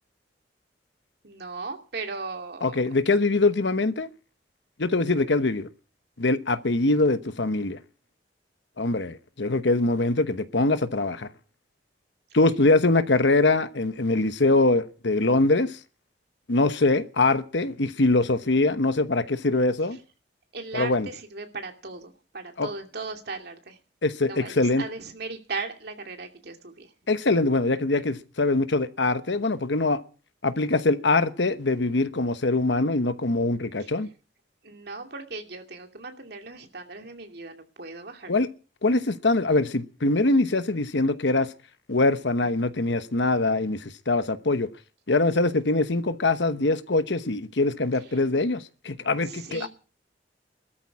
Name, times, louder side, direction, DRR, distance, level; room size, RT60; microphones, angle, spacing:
voice 1, 1.2-2.7 20.5-23.8 24.3-26.9 34.6-38.3 49.3-49.7, right 4 dB, 60° right, 2.6 m, -37 dB
voice 2, 2.6-4.1 4.8-5.7 6.2-7.8 8.8-11.3 12.3-15.8 16.5-20.0 20.7-21.1 22.6-22.7 24.0-24.8 27.1-30.0 30.4-34.1 38.3-38.5 38.8-41.5 41.9-44.7 45.1-49.7, left 2 dB, 70° left, 1.0 m, -23 dB
18.5 x 13.0 x 4.8 m
head